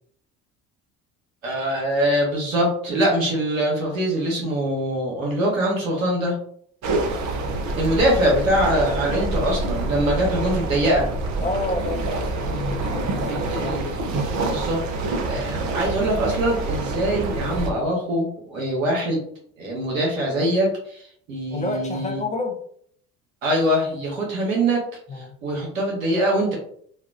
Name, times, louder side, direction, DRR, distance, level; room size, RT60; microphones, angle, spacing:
voice 1, 1.4-6.4 7.8-11.1 13.5-13.8 14.4-19.2 19.6-22.2 23.4-24.8 25.1-26.6, right 1 dB, 90° right, -3 dB, 1.1 m, -23 dB
sound 1, 6.8-17.7, right 2 dB, 45° right, 0.7 m, -26 dB
voice 2, 11.4-13.7 15.3-15.5 21.5-22.6 25.1-25.3, left 2 dB, 20° left, 3 dB, 0.5 m, -30 dB
3.2 x 2.3 x 2.4 m, 0.62 s
hypercardioid pair, 60°, 39 cm